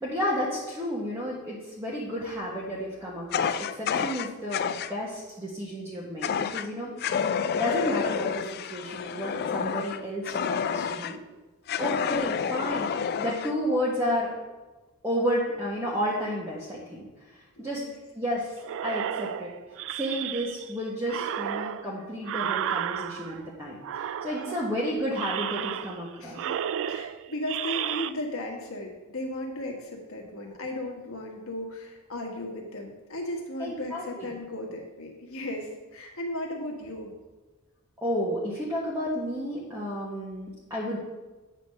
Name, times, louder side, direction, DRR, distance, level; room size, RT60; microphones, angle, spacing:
voice 1, 0.0-7.2 7.6-11.2 11.8-14.3 15.0-17.1 17.6-17.8 18.1-18.5 18.8-19.5 19.9-23.8 24.2-26.4 33.6-34.3 38.0-41.0, equal, 10° right, -7 dB, 1.3 m, -31 dB
Fire, 3.3-4.9 6.2-6.7 7.0-11.2 11.7-13.5, left 7 dB, 45° left, 0.3 m, -29 dB
voice 2, 17.6-17.9 24.3-24.6 26.2-26.6 26.9-37.1, left 1 dB, 65° left, 1 dB, 1.5 m, -36 dB
sound 1, 18.6-20.7 21.1-23.5 23.8-24.7 25.1-26.1 26.3-28.1, right 10 dB, 60° right, 0.3 m, -32 dB
8.9 x 4.0 x 6.5 m, 1.2 s
head